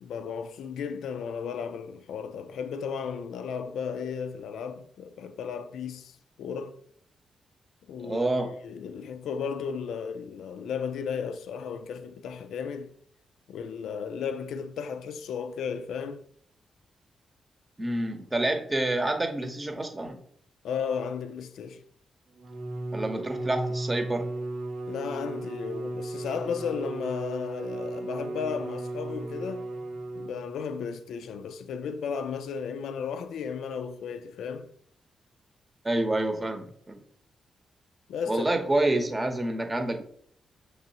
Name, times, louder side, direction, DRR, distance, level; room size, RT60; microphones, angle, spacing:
voice 1, 0.0-6.8 7.9-12.9 13.5-16.3 20.6-21.8 24.9-29.7 30.1-34.7 38.1-38.7, left 6 dB, 85° left, 0.4 m, -34 dB
voice 2, 8.0-8.6 17.8-20.2 22.9-24.3 35.8-37.0 38.3-40.0, right 1 dB, 25° right, 0.8 m, -28 dB
Bowed string instrument, 22.4-30.7, right 2 dB, 85° right, 0.6 m, -35 dB
6.0 x 3.1 x 2.8 m
cardioid pair, 80°, 0 cm